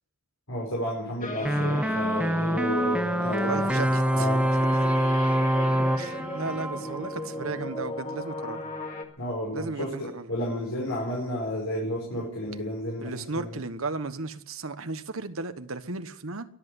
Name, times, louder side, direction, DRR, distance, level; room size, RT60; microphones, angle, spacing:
voice 1, 0.5-4.5 9.2-13.6, left 1 dB, 85° left, 5.2 m, -32 dB
sound 1, 1.2-9.0, left 1 dB, 40° left, 2.1 m, -36 dB
sound 2, 1.5-7.6, equal, 5° right, 0.7 m, -25 dB
voice 2, 3.2-4.3 4.7-5.1 6.0-8.7 9.5-10.3 13.0-16.5, right 3 dB, 85° right, 1.3 m, -35 dB
22.5 x 8.2 x 7.9 m
head